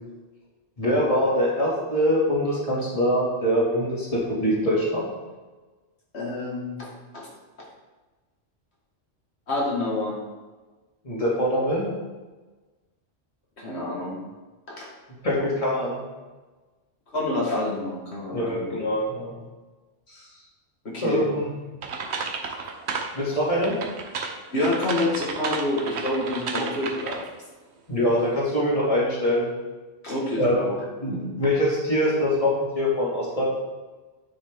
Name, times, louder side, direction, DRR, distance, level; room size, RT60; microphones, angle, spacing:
voice 1, 0.8-5.1 11.0-11.9 15.2-16.0 18.3-19.3 21.0-21.5 23.1-23.7 27.9-29.5 30.3-30.6 31.0-33.4, equal, 30° left, -6 dB, 2.5 m, -23 dB
voice 2, 6.1-7.3 9.5-10.2 13.6-14.2 14.7-14.9 17.1-18.8 20.1-20.3 20.9-21.2 24.5-27.2 30.0-30.8, left 2 dB, 65° left, -4 dB, 2.1 m, -28 dB
sound 1, 21.8-23.2 23.6-27.4, right 5 dB, 70° right, 1.1 m, -32 dB
9.7 x 6.2 x 3.6 m, 1.2 s
omnidirectional pair, 1.2 m